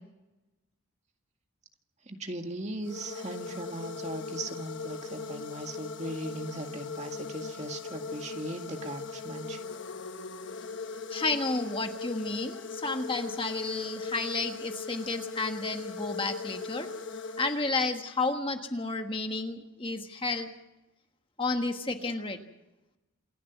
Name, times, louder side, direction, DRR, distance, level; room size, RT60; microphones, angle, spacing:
voice 1, 2.1-9.6, right 2 dB, 35° right, 4 dB, 2.0 m, -39 dB
sound 1, 2.8-18.0, left 4 dB, 55° left, 1.2 m, -39 dB
voice 2, 11.1-16.9 17.4-20.5 21.4-22.4, left 3 dB, 25° left, 5 dB, 1.4 m, -31 dB
28.0 x 11.5 x 9.3 m, 0.95 s
head